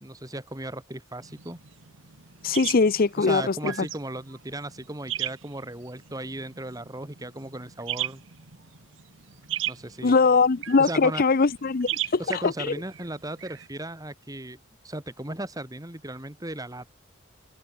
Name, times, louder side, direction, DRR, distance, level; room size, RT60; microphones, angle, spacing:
voice 1, 0.0-1.6 3.2-8.2 9.6-10.2 10.8-11.2 12.2-14.6 14.8-16.9, right 1 dB, 20° right, 2.5 m, -36 dB
sound 1, 1.2-13.7, right 12 dB, 65° right, 1.6 m, -38 dB
voice 2, 2.4-3.7 10.0-12.7, left 4 dB, 45° left, 0.6 m, -22 dB
head